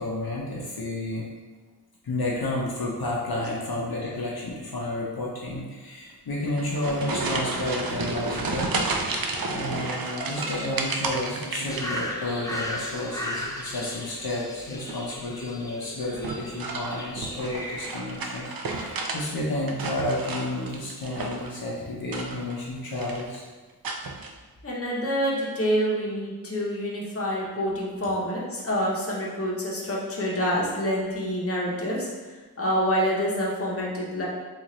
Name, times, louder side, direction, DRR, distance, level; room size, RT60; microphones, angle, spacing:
voice 1, 0.0-1.3 2.0-8.7 9.5-23.4, left 1 dB, 65° left, -4 dB, 0.6 m, -31 dB
sound 1, 6.4-12.5 12.8-13.3 14.7-15.1 16.1-19.2 19.5-21.6 22.0-22.6 22.9-23.4 23.8-24.3, right 3 dB, 65° right, 0.5 m, -32 dB
sound 2, 11.7-18.0, left 1 dB, 10° left, 0.4 m, -36 dB
voice 2, 24.6-32.1 32.6-34.3, equal, 35° left, -4 dB, 0.8 m, -27 dB
3.8 x 2.5 x 3.0 m, 1.3 s
wide cardioid pair, 60°, 39 cm